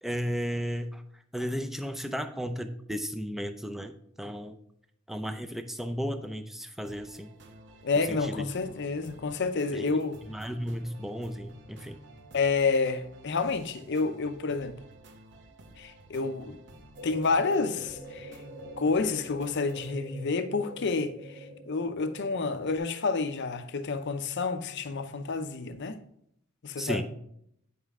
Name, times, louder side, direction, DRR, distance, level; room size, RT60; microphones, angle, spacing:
voice 1, 0.0-1.0 1.3-4.5 5.1-7.3 8.1-8.4 9.7-9.8 10.3-12.0 26.8-27.0, equal, ahead, 0.5 m, -34 dB
sound 1, 6.8-19.9, right 1 dB, 55° right, 0.9 m, -52 dB
voice 2, 7.8-10.2 12.3-14.8 15.8-16.6 17.0-18.4 18.8-21.4 21.7-26.0 26.6-27.0, left 4 dB, 55° left, 0.6 m, -29 dB
sound 2, 17.0-22.8, right 1 dB, 30° right, 0.8 m, -45 dB
8.8 x 5.4 x 3.6 m
head